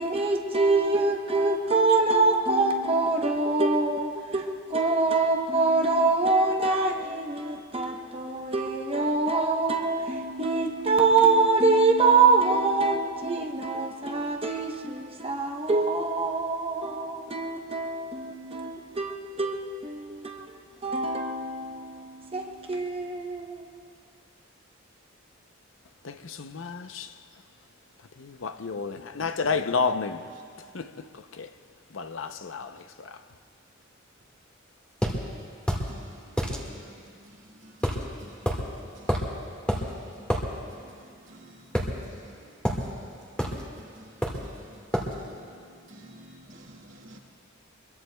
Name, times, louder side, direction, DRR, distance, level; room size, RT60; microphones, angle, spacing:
voice 1, 0.0-23.8, right 3 dB, 30° right, 0.9 m, -25 dB
voice 2, 26.0-27.1 28.2-30.2 30.7-30.9 31.4-31.5 31.9-32.7, left 5 dB, 70° left, 0.6 m, -30 dB
sound 1, 35.0-35.2 35.7-35.9 36.4-36.6 37.8-38.0 38.5-38.6 39.1-39.3 39.7-39.9 40.3-40.5 41.7-42.3 42.6-42.8 43.4-43.6 44.2-44.5 44.9-45.1, equal, 5° left, 1.7 m, -27 dB
voice 3, 35.9-47.2, right 1 dB, 65° right, 2.2 m, -52 dB
25.0 x 22.5 x 2.3 m
head